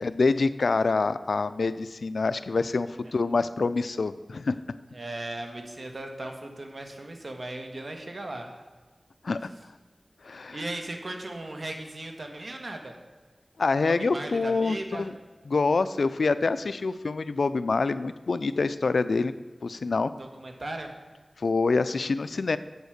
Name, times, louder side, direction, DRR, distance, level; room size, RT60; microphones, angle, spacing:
voice 1, 0.0-4.6 9.2-9.5 10.2-10.6 13.6-15.1 15.5-19.3 19.6-20.1 21.4-22.6, left 3 dB, 90° left, 14 dB, 0.4 m, -26 dB
voice 2, 4.9-8.6 10.5-13.0 13.8-15.1 20.2-21.0, right 2 dB, 60° right, 4 dB, 1.5 m, -37 dB
8.1 x 7.4 x 6.4 m, 1.3 s
wide cardioid pair, 60°, 0 cm